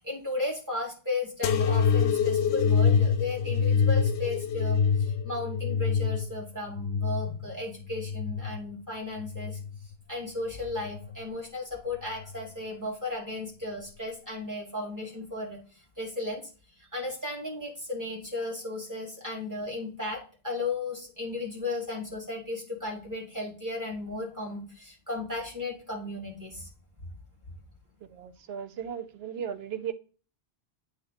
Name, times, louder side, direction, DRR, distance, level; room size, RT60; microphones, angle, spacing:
voice 1, 0.0-9.6 10.1-15.6 16.0-16.5 16.9-26.7, left 2 dB, 15° right, 2.4 m, -35 dB
sound 1, 1.4-8.6 9.2-9.9 10.7-11.2 12.2-12.3, left 6 dB, 90° left, 0.9 m, -26 dB
voice 2, 28.1-29.9, right 8 dB, 75° right, 0.9 m, -36 dB
8.8 x 3.2 x 3.9 m
omnidirectional pair, 1.1 m